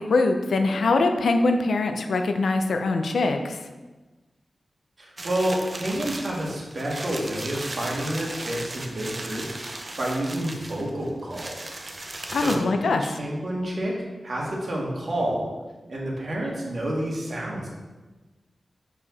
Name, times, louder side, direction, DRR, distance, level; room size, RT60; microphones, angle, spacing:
voice 1, 0.0-3.6 12.3-13.2, left 3 dB, 85° left, 6 dB, 0.5 m, -23 dB
voice 2, 5.0-9.6 10.0-11.6 12.3-13.9 14.2-15.5 15.9-17.7, right 1 dB, 60° right, -3 dB, 1.7 m, -29 dB
sound 1, 5.2-12.6, right 2 dB, 45° right, 0.7 m, -36 dB
5.6 x 4.8 x 4.1 m, 1.2 s
cardioid pair, 50°, 0 cm